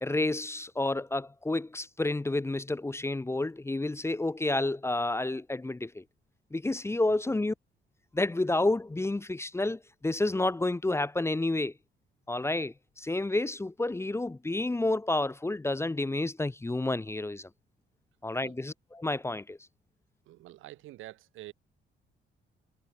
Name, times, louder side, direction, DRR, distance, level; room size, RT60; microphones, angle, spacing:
voice 1, 0.0-6.0 6.5-7.5 8.1-11.7 12.3-17.5 18.2-19.6, left 2 dB, 15° left, 0.8 m, -30 dB
voice 2, 20.3-21.5, right 16 dB, 90° right, 2.1 m, -47 dB
cardioid pair, 90°, 20 cm